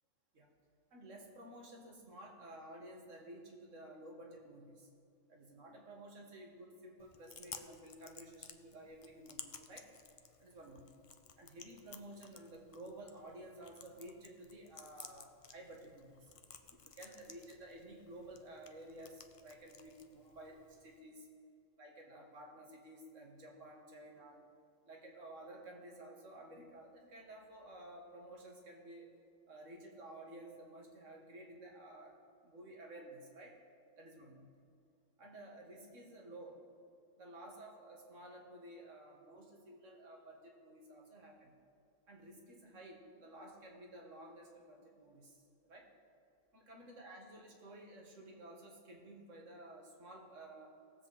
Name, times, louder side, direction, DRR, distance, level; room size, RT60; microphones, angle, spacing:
voice 1, 0.9-4.9 5.3-9.9 10.4-10.9 11.4-16.3 16.7-21.3 21.8-24.4 24.9-29.1 29.5-32.2 32.4-33.6 34.0-34.5 35.2-36.6 37.2-41.6 42.1-45.9 46.5-50.7, right 1 dB, 90° right, 0 dB, 1.9 m, -53 dB
Chewing mastication, 7.0-21.0, left 5 dB, 40° left, 0.5 m, -56 dB
18.5 x 7.5 x 4.0 m, 2.4 s
omnidirectional pair, 1.3 m